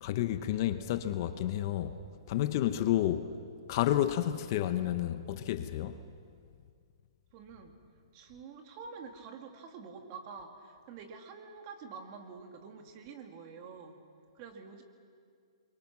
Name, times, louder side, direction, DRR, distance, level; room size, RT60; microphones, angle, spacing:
voice 1, 0.0-2.0 2.3-3.3 3.7-6.0, left 12 dB, 40° left, 0.9 m, -30 dB
voice 2, 7.3-7.7 8.1-14.0 14.3-14.8, right 5 dB, 30° right, 2.3 m, -47 dB
29.0 x 23.5 x 6.1 m
hypercardioid pair, 160°, 3 cm